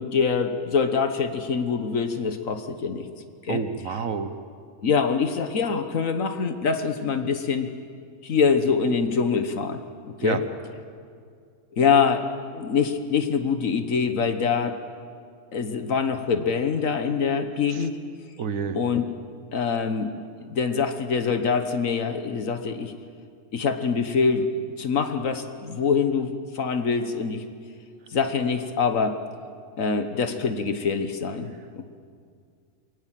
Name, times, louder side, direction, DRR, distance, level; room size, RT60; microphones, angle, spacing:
voice 1, 0.0-3.1 3.4-3.6 4.8-7.7 8.2-10.4 11.7-14.8 15.5-18.0 18.7-19.1 19.5-20.1 20.5-22.9 23.5-24.5 24.8-27.4 28.1-29.2 29.8-31.5 31.8-31.9, left 5 dB, 55° left, 8 dB, 1.5 m, -24 dB
voice 2, 3.5-4.3 10.2-10.4 18.4-18.8, right 6 dB, 60° right, 10 dB, 1.3 m, -28 dB
23.5 x 17.5 x 7.5 m, 2.2 s
omnidirectional pair, 1.7 m